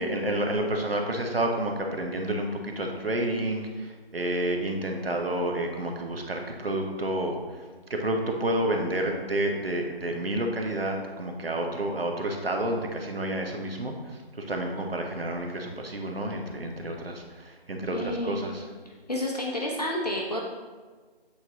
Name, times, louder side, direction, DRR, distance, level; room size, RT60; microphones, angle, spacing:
voice 1, 0.0-7.6 7.9-18.7, right 1 dB, 70° right, 2 dB, 1.0 m, -30 dB
voice 2, 17.9-18.4 19.1-20.4, left 1 dB, 40° left, -2 dB, 0.7 m, -30 dB
7.9 x 4.2 x 3.0 m, 1.4 s
figure-of-eight pair, 165°, 31 cm